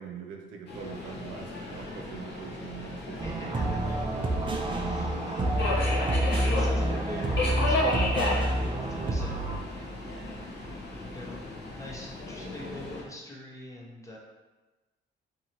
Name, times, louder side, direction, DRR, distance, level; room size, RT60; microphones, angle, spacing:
voice 1, 0.0-3.7, right 7 dB, 80° right, 2 dB, 0.5 m, -43 dB
Subway metro underground, 0.7-13.0, left 1 dB, 60° left, 0.7 m, -34 dB
voice 2, 3.2-3.9 4.7-5.4 5.8-9.3 9.7-9.9 11.0-11.4 11.7-14.2, left 1 dB, 15° left, -3 dB, 0.7 m, -43 dB
sound 1, 3.2-9.6, right 1 dB, 25° right, 0.4 m, -28 dB
2.7 x 2.7 x 2.8 m, 1.2 s
cardioid pair, 90°, 20 cm